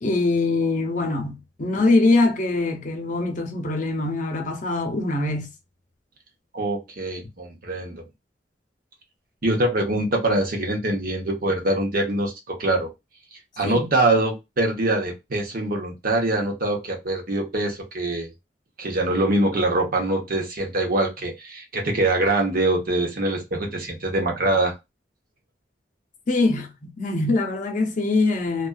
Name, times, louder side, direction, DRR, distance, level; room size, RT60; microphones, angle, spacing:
voice 1, 0.0-5.5 13.6-13.9 26.3-28.7, left 2 dB, 45° left, 0.6 m, -23 dB
voice 2, 6.5-8.0 9.4-12.9 13.6-18.3 18.8-24.7, right 2 dB, 55° right, 0.8 m, -24 dB
2.4 x 2.3 x 2.2 m
head